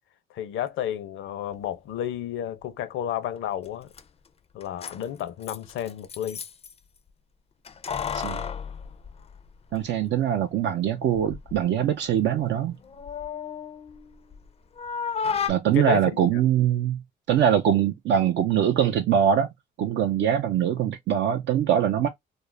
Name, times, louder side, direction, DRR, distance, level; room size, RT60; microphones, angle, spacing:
voice 1, 0.3-3.9 4.5-6.4 15.7-16.4, left 10 dB, 80° left, 0.6 m, -31 dB
Keys jangling, 3.6-3.7 3.9-4.0 4.6-6.7 7.6-9.8 10.1-10.2 11.1-11.6 12.0-14.5 14.8-15.5, left 6 dB, 30° left, 0.4 m, -33 dB
voice 2, 9.7-12.7 15.5-17.0 17.3-19.5 19.8-22.1, right 9 dB, 65° right, 0.4 m, -23 dB
2.4 x 2.0 x 3.1 m
cardioid pair, 90°, 20 cm